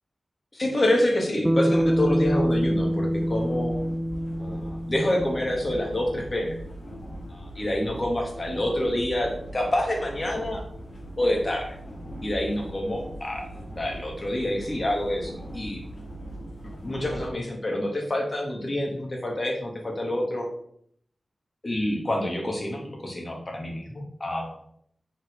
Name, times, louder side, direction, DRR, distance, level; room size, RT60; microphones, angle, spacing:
voice 1, 0.5-3.7 4.4-6.6 7.6-10.6 11.2-11.8 12.2-13.5 13.8-15.8 16.8-20.5 21.6-24.5, left 1 dB, 35° left, 0 dB, 2.0 m, -27 dB
Bass guitar, 1.4-5.9, equal, 10° right, 0.5 m, -25 dB
sound 1, 1.7-17.3, right 1 dB, 75° left, 2.8 m, -40 dB
6.1 x 4.4 x 5.1 m, 0.66 s
wide cardioid pair, 95°, 0 cm